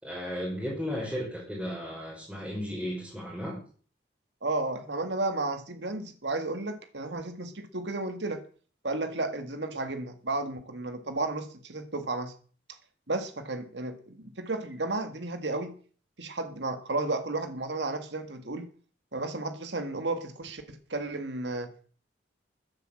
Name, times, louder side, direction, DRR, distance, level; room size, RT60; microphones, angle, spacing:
voice 1, 0.0-3.6, equal, 5° right, -5 dB, 5.6 m, -34 dB
voice 2, 4.4-8.4 8.8-12.3 13.1-15.7 16.2-18.7 19.1-21.7, right 2 dB, 75° right, 8 dB, 1.9 m, -33 dB
14.0 x 10.0 x 7.7 m, 0.43 s
head